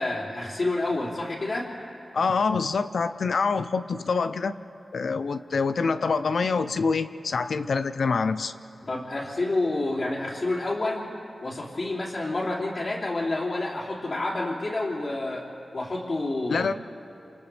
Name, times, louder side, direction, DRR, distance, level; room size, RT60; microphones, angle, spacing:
voice 1, 0.0-1.7 8.8-11.1 11.4-15.5 15.7-16.7, left 2 dB, 50° left, -9 dB, 3.0 m, -29 dB
voice 2, 2.1-4.6 4.9-8.5 16.5-16.7, left 4 dB, 75° left, 11 dB, 0.6 m, -25 dB
28.5 x 28.5 x 3.4 m, 2.6 s
wide cardioid pair, 125°, 0 cm